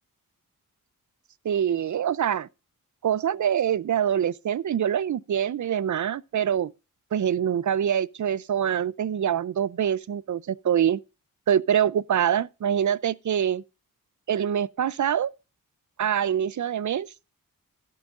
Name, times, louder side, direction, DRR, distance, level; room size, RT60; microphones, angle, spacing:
voice 1, 1.4-2.5 3.0-6.7 7.1-11.0 11.5-13.6 14.3-15.3 16.0-17.1, right 9 dB, 60° right, 0.5 m, -25 dB
12.5 x 11.0 x 2.5 m
cardioid pair, 65°, 34 cm